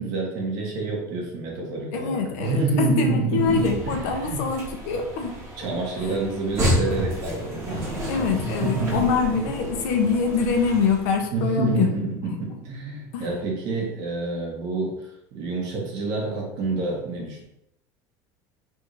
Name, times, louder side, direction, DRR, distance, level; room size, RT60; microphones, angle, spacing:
voice 1, 0.0-4.4 5.6-9.5 11.3-17.4, right 3 dB, 45° right, -2 dB, 1.3 m, -28 dB
voice 2, 1.9-5.3 6.0-6.1 8.1-11.9 13.1-13.3, left 5 dB, 70° left, 4 dB, 0.8 m, -24 dB
sound 1, 3.3-11.2, equal, 30° right, 1.4 m, -31 dB
3.5 x 2.7 x 4.6 m, 0.81 s
cardioid pair, 180°, 9 cm